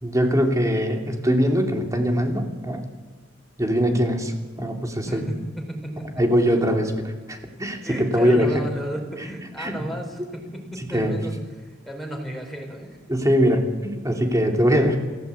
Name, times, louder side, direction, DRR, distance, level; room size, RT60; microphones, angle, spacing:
voice 1, 0.0-2.9 3.6-5.2 6.2-8.7 9.6-9.7 10.9-11.2 13.1-15.0, equal, 15° right, 3 dB, 2.9 m, -22 dB
voice 2, 5.1-6.6 7.8-13.0, equal, ahead, 1 dB, 4.6 m, -34 dB
28.5 x 16.0 x 8.5 m, 1.4 s
head